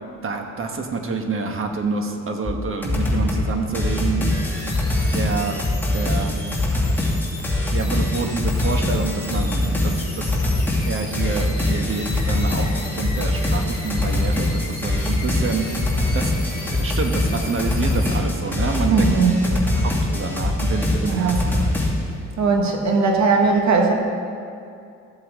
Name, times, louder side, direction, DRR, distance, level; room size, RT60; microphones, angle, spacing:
voice 1, 0.2-4.2 4.8-5.6 5.9-6.4 7.7-10.4 10.8-15.7 16.1-16.3 16.7-19.1 19.4-21.5, right 4 dB, 45° right, 4 dB, 1.3 m, -27 dB
sound 1, 2.5-2.6 2.8-3.5 3.7-21.9, left 2 dB, 5° left, 2.5 m, -23 dB
sound 2, 4.3-18.2, left 3 dB, 30° left, 2.1 m, -38 dB
voice 2, 18.9-19.3 21.1-21.4 22.4-23.9, right 4 dB, 65° right, 2 dB, 1.7 m, -18 dB
14.0 x 7.8 x 3.7 m, 2.4 s
cardioid pair, 90°, 30 cm